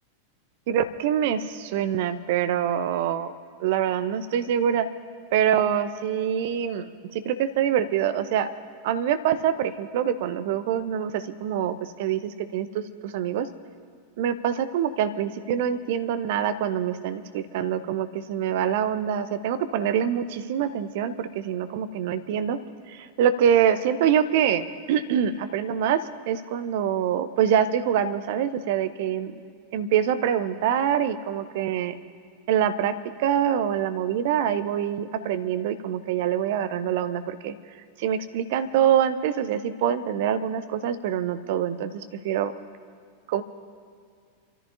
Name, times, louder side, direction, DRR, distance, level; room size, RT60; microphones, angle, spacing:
voice 1, 0.7-3.3 3.6-4.9 5.3-8.5 8.8-13.5 14.2-22.6 22.9-29.4 29.7-32.0 32.5-37.5 38.0-42.5 43.3-43.4, right 9 dB, 50° right, 11 dB, 0.8 m, -25 dB
27.5 x 14.0 x 2.8 m, 2.2 s
figure-of-eight pair, 90°, 0 cm